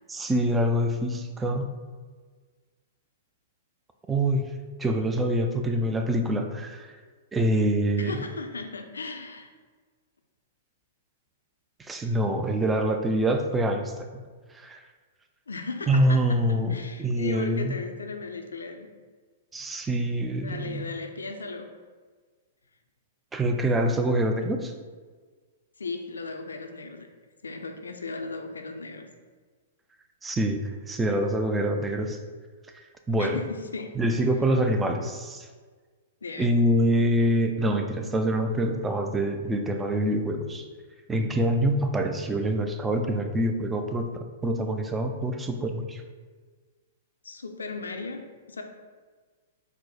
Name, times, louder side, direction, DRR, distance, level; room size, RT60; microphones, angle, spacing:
voice 1, 0.1-1.8 4.1-6.9 7.3-8.3 11.8-13.9 14.5-14.8 15.9-17.7 19.5-20.9 23.3-24.7 30.2-30.6 30.9-32.2 33.1-33.4 34.0-35.5 36.4-40.7 41.1-46.0, right 1 dB, 15° right, 5 dB, 0.4 m, -25 dB
voice 2, 8.0-9.5 15.5-18.9 20.1-21.7 25.8-27.1 27.4-29.1 33.2-34.2 36.2-36.5 47.2-48.6, left 3 dB, 85° left, 5 dB, 0.4 m, -36 dB
4.2 x 2.1 x 3.9 m, 1.5 s
hypercardioid pair, 115°, 0 cm